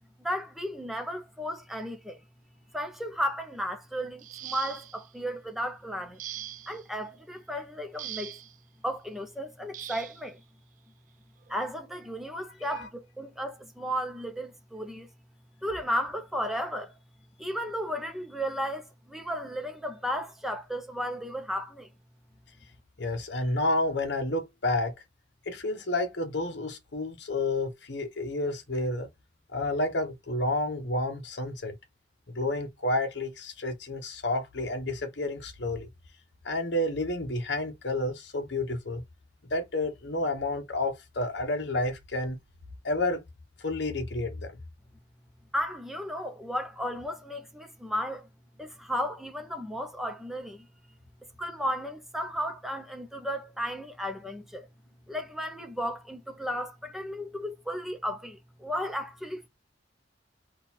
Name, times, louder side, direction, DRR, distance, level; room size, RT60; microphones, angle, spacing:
voice 1, 0.2-2.2 2.7-6.2 6.7-8.4 8.8-10.4 11.5-15.1 15.6-16.9 17.4-21.9 45.5-48.3 48.6-50.7 51.4-54.7 55.1-59.5, equal, ahead, 0.7 m, -34 dB
sound 1, 4.2-5.1 6.2-6.8 8.0-8.6 9.7-10.2 11.4-11.5 12.1-12.3, right 12 dB, 45° right, 0.3 m, -41 dB
voice 2, 23.0-24.9 25.5-29.1 29.5-31.7 32.3-35.9 36.4-39.0 39.5-42.4 42.8-43.2 43.6-44.6, left 2 dB, 70° left, 0.9 m, -30 dB
3.8 x 2.4 x 4.1 m
head